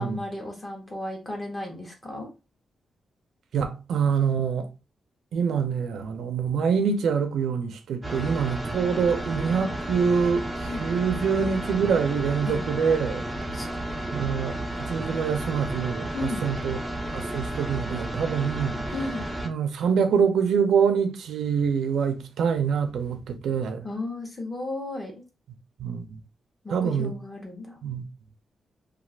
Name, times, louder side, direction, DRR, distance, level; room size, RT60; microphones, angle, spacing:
voice 1, 0.0-2.3 10.7-10.9 12.5-12.6 13.5-13.9 16.1-16.5 18.9-19.2 23.8-25.2 26.6-27.8, left 2 dB, 15° left, 0.8 m, -34 dB
voice 2, 3.5-4.7 5.3-13.3 13.6-13.7 14.1-16.8 17.1-18.8 19.4-23.9 25.8-26.1 26.7-27.1 27.8-28.0, right 6 dB, 90° right, 0.4 m, -25 dB
sound 1, 8.0-19.5, right 1 dB, 15° right, 0.4 m, -32 dB
2.4 x 2.3 x 3.2 m
wide cardioid pair, 175°, 0 cm